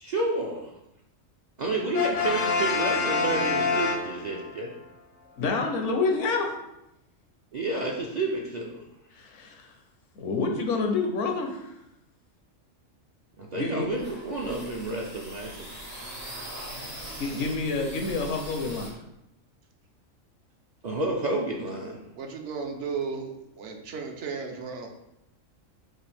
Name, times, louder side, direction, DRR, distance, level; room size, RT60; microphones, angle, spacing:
voice 1, 0.0-0.7 1.6-4.7 7.5-8.8 13.4-15.7 20.8-22.0, right 2 dB, 50° right, -2 dB, 0.5 m, -30 dB
Brass instrument, 1.9-4.6, left 3 dB, 55° left, 0.7 m, -26 dB
voice 2, 5.4-6.6 9.1-9.7 10.2-11.7 13.5-13.9 17.2-19.0, left 3 dB, 75° left, 3 dB, 1.0 m, -28 dB
sound 1, 13.9-18.9, right 1 dB, 85° right, 1.9 m, -41 dB
voice 3, 22.2-24.9, right 5 dB, 70° right, 3 dB, 0.9 m, -34 dB
6.0 x 2.4 x 3.4 m, 0.86 s
omnidirectional pair, 1.3 m